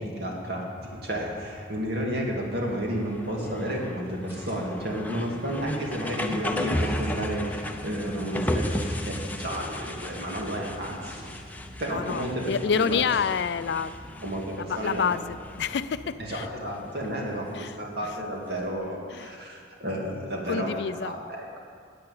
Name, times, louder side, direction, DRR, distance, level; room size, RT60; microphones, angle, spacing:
voice 1, 0.0-11.2 11.8-13.0 14.2-15.1 16.2-21.6, equal, 55° right, -2 dB, 2.3 m, -32 dB
sound 1, 0.8-18.7, left 1 dB, 10° left, 0.6 m, -36 dB
sound 2, 4.2-4.6 6.8-7.1 8.8-9.0 9.6-9.7 11.1-11.5 13.0-13.3 14.8-15.0, left 1 dB, 10° right, 2.0 m, -50 dB
sound 3, 5.6-17.1, equal, 25° right, 3.0 m, -48 dB
voice 2, 11.9-13.9 14.6-16.5 17.5-18.1 19.1-19.4 20.5-21.1, left 6 dB, 60° left, 14 dB, 0.4 m, -28 dB
10.5 x 8.5 x 8.7 m, 2.2 s
head